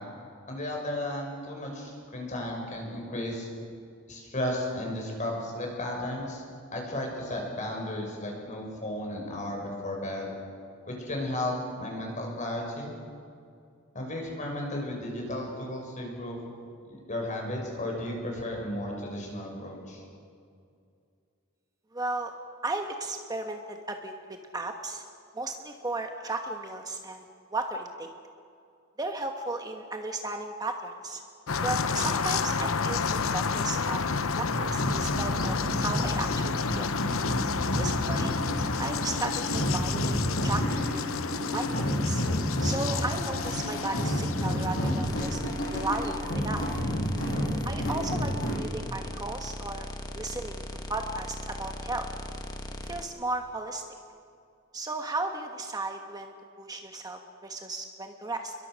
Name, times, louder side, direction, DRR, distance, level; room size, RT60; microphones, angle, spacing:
voice 1, 0.5-3.5 4.1-6.4 6.7-10.3 10.8-12.9 13.9-16.5 16.9-20.0, left 1 dB, 35° left, 0 dB, 6.2 m, -34 dB
voice 2, 21.9-22.3 22.6-24.1 24.5-25.0 25.3-28.1 29.0-31.2 31.6-36.9 37.8-38.4 38.8-41.0 41.5-42.2 42.6-45.4 45.7-46.6 47.6-49.8 50.1-50.6 50.9-52.1 52.8-53.8 54.7-58.5, right 2 dB, 20° right, 4 dB, 1.2 m, -35 dB
sound 1, 31.5-46.3, left 5 dB, 85° left, 0.9 m, -31 dB
sound 2, 34.5-48.5, equal, 65° left, 7.9 m, -30 dB
sound 3, 45.0-53.0, left 1 dB, 20° left, 1.5 m, -39 dB
29.5 x 22.5 x 6.4 m, 2.4 s
head